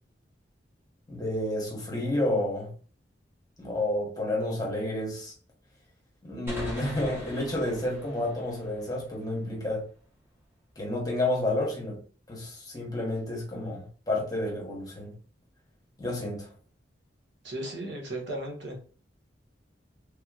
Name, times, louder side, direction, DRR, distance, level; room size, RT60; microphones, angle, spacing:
voice 1, 1.1-2.7 3.6-5.3 6.2-9.8 10.8-12.0 12.3-15.1 16.0-16.5, left 1 dB, 20° left, 1.1 m, -30 dB
sound 1, 6.5-9.9, equal, 15° right, 1.0 m, -42 dB
voice 2, 17.4-18.8, right 1 dB, 70° right, 1.1 m, -35 dB
3.4 x 3.0 x 2.3 m
head